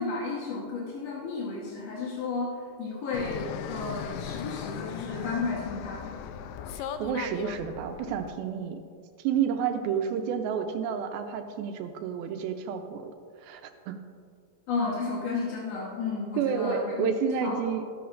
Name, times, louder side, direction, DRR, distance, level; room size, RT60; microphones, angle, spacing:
voice 1, 0.0-6.1 14.7-16.9 17.4-17.6, left 4 dB, 60° left, -4 dB, 1.7 m, -33 dB
Fixed-wing aircraft airplane, 3.1-8.3, left 8 dB, 80° left, 2.2 m, -38 dB
voice 2, 6.8-8.8 9.2-13.1 13.4-13.6 13.9-14.0 16.4-17.8, right 7 dB, 80° right, 6 dB, 2.4 m, -30 dB
13.0 x 13.0 x 2.5 m, 2.2 s
omnidirectional pair, 4.4 m